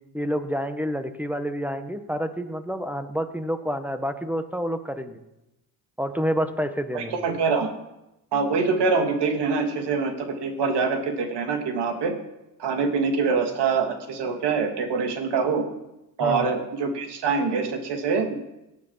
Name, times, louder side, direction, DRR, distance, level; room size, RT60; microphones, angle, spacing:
voice 1, 0.1-5.2 6.0-7.2 16.2-16.5, equal, 5° right, 9 dB, 1.5 m, -28 dB
voice 2, 6.9-7.7 8.3-12.1 12.6-15.6 16.2-18.3, right 4 dB, 60° right, 5 dB, 2.7 m, -24 dB
17.5 x 9.5 x 5.8 m, 0.93 s
supercardioid pair, 70°, 46 cm